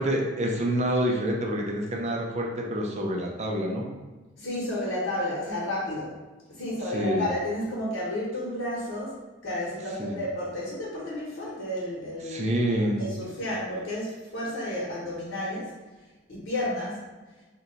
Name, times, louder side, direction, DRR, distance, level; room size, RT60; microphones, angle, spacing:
voice 1, 0.0-3.9 6.9-7.3 10.0-10.2 12.2-13.0, right 1 dB, 35° right, 0 dB, 0.5 m, -27 dB
voice 2, 4.4-6.2 6.5-12.5 13.0-15.7 16.3-17.0, left 1 dB, 65° left, -8 dB, 0.9 m, -32 dB
2.8 x 2.2 x 3.8 m, 1.2 s
head